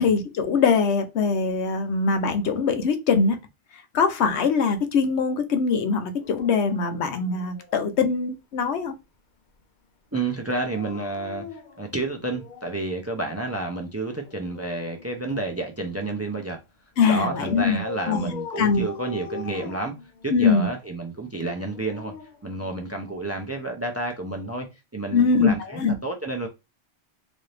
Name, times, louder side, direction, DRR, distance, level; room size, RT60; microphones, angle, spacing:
voice 1, 0.0-3.4 3.9-8.9 17.0-17.8 18.1-18.3 18.6-18.8 20.3-20.7 25.1-25.9, left 5 dB, 85° left, 1.0 m, -22 dB
Dog, 6.2-8.1 10.5-12.9 14.2-15.8 17.0-20.5 21.5-23.2 24.4-24.6, left 4 dB, 55° left, 0.6 m, -40 dB
voice 2, 10.1-16.6 17.1-19.9 20.2-22.1 22.4-26.5, right 2 dB, 20° right, 0.4 m, -30 dB
4.0 x 2.6 x 3.3 m
omnidirectional pair, 1.1 m